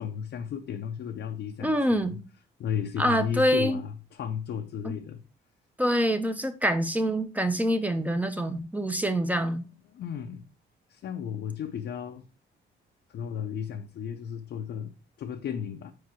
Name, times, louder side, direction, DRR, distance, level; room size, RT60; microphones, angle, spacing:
voice 1, 0.0-2.2 2.6-5.2 9.9-10.4 10.9-12.2 13.1-15.9, left 8 dB, 60° left, 0.6 m, -34 dB
voice 2, 1.6-2.2 3.0-3.8 4.8-5.0 5.8-9.6, equal, 10° right, 0.8 m, -26 dB
4.8 x 4.6 x 4.5 m
cardioid pair, 90°, 20 cm